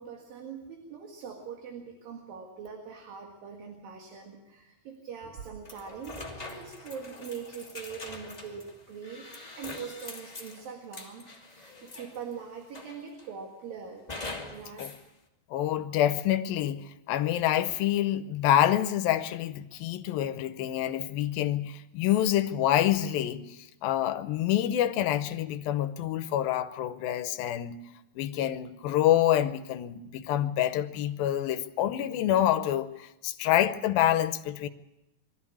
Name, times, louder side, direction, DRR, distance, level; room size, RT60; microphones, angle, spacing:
voice 1, 0.0-14.1 14.4-14.9, right 6 dB, 70° right, 3.5 m, -42 dB
sound 1, 5.6-12.3 12.7-13.3 14.1-15.0, left 2 dB, 20° left, 1.1 m, -43 dB
voice 2, 15.5-23.4 23.8-27.8 28.2-34.7, left 12 dB, 75° left, 2.5 m, -27 dB
22.5 x 13.5 x 8.5 m
omnidirectional pair, 4.4 m